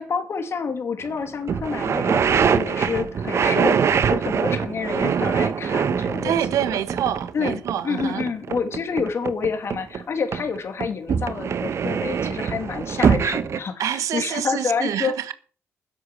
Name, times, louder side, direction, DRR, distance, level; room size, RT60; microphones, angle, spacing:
voice 1, 0.0-6.4 7.3-15.1, left 5 dB, 50° left, 2.8 m, -28 dB
sound 1, 1.1-1.2 1.5-10.0 10.3-13.6, right 7 dB, 55° right, 1.1 m, -23 dB
voice 2, 6.2-8.3 13.8-15.3, right 10 dB, 80° right, 1.3 m, -26 dB
10.5 x 8.2 x 7.8 m
cardioid pair, 80°, 5 cm